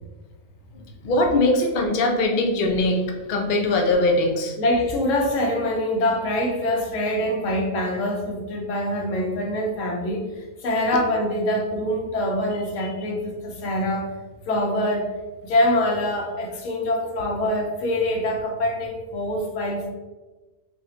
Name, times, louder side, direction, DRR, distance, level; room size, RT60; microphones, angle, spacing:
voice 1, 0.7-4.5 12.8-12.9, left 2 dB, 80° left, 2 dB, 0.4 m, -21 dB
voice 2, 4.6-10.2 10.6-14.1 14.5-15.1 15.4-19.9, left 1 dB, 60° left, 0 dB, 1.0 m, -24 dB
5.6 x 2.0 x 2.8 m, 1.2 s
omnidirectional pair, 1.6 m